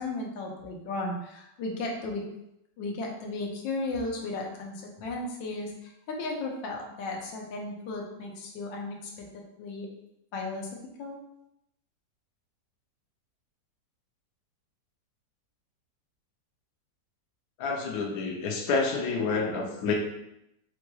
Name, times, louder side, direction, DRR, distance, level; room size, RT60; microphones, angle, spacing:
voice 1, 0.0-2.2 2.8-9.2 9.6-9.9 10.3-10.7 11.0-11.2, left 2 dB, 85° left, 0 dB, 1.4 m, -35 dB
voice 2, 17.6-19.9, left 4 dB, 65° left, 0 dB, 1.0 m, -28 dB
4.7 x 2.2 x 3.0 m, 0.83 s
omnidirectional pair, 1.9 m